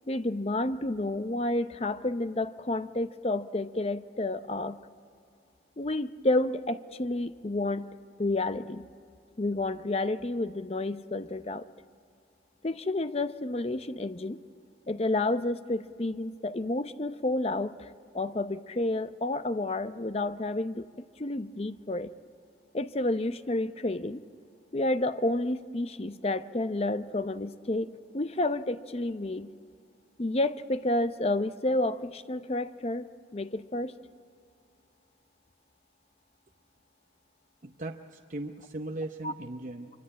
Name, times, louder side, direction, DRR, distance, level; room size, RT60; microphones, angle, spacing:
voice 1, 0.1-4.8 5.8-7.9 8.2-8.8 9.4-11.6 12.6-14.4 14.9-20.9 21.2-22.1 22.7-24.2 24.7-27.9 28.1-29.5 30.2-33.1 33.3-33.9 39.2-39.3, left 2 dB, 35° left, 12 dB, 0.6 m, -30 dB
voice 2, 37.6-39.9, right 2 dB, 45° right, 4 dB, 0.8 m, -38 dB
24.5 x 24.0 x 8.7 m, 2.3 s
head